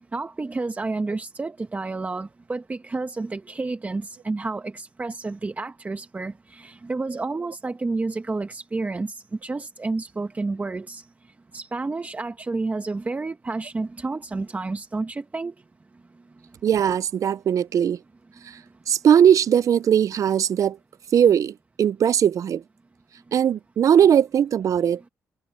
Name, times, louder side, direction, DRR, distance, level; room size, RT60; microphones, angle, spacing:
voice 1, 0.0-11.0 11.5-15.5, right 3 dB, 25° right, 1.4 m, -30 dB
voice 2, 16.6-18.0 18.9-20.8 21.1-22.6 23.3-25.0, right 9 dB, 60° right, 0.4 m, -19 dB
cardioid pair, 95°, 6 cm